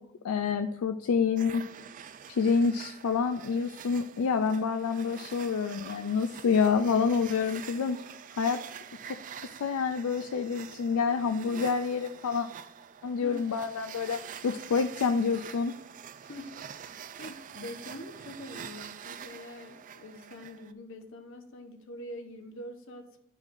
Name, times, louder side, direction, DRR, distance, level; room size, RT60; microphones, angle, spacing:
voice 1, 0.2-1.6 2.3-8.0 8.3-8.6 9.6-12.5 13.0-15.7, left 5 dB, 80° left, 7 dB, 0.4 m, -27 dB
sound 1, 1.4-20.7, right 8 dB, 40° right, 0.3 m, -46 dB
voice 2, 16.2-23.2, left 1 dB, 65° left, 6 dB, 0.9 m, -45 dB
11.0 x 4.8 x 2.6 m, 0.86 s
head